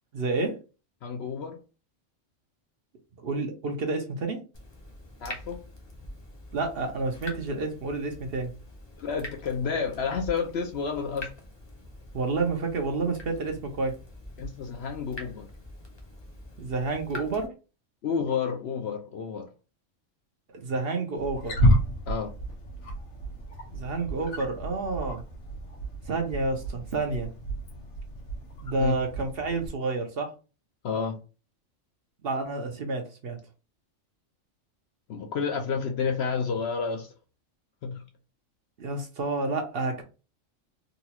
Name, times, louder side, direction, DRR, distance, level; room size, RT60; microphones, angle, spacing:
voice 1, 0.1-0.6 3.2-4.4 6.5-8.5 12.1-14.0 16.6-17.5 20.5-21.6 23.7-25.2 26.1-27.3 28.6-30.3 32.2-33.4 38.8-40.0, right 3 dB, 55° right, 0.8 m, -29 dB
voice 2, 1.0-1.6 5.2-5.6 9.0-11.3 14.4-15.5 18.0-19.5 22.1-22.3 28.8-29.0 30.8-31.2 35.1-37.1 37.8-38.0, left 5 dB, 65° left, 0.7 m, -30 dB
Water tap faucet / Drip, 4.5-17.5, left 1 dB, 25° left, 0.8 m, -44 dB
Wild animals, 21.2-29.7, equal, 85° left, 1.5 m, -30 dB
3.8 x 2.3 x 2.9 m
omnidirectional pair, 1.4 m